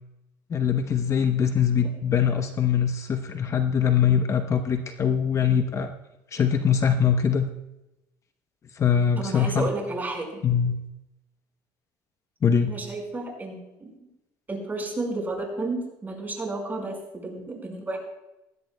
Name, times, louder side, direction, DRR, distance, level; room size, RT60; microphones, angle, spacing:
voice 1, 0.5-5.9 6.3-7.5 8.8-9.7 10.4-10.8 12.4-12.7, left 7 dB, 35° left, 7 dB, 0.8 m, -22 dB
voice 2, 9.2-10.4 12.7-13.9 14.5-18.0, right 2 dB, 20° right, 1 dB, 4.8 m, -32 dB
19.5 x 15.0 x 2.2 m, 0.94 s
cardioid pair, 115°, 8 cm